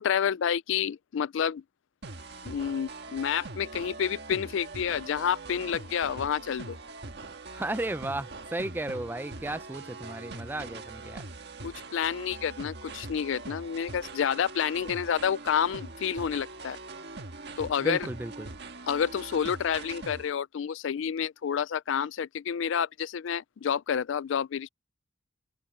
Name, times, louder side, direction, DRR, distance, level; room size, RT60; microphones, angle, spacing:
voice 1, 0.0-1.6 2.4-6.8 11.6-16.8 17.6-18.1 18.9-24.7, left 8 dB, 70° left, 0.4 m, -29 dB
sound 1, 2.0-20.3, right 3 dB, 55° right, 1.6 m, -42 dB
voice 2, 7.5-11.2 17.8-18.5, right 2 dB, 10° right, 0.4 m, -34 dB
head